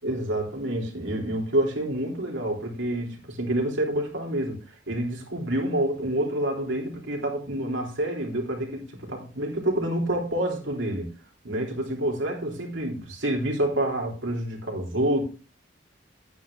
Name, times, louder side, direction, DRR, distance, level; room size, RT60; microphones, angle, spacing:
voice 1, 0.0-11.1 11.4-15.2, right 1 dB, 80° right, 3.5 m, -28 dB
11.0 x 9.1 x 3.7 m
head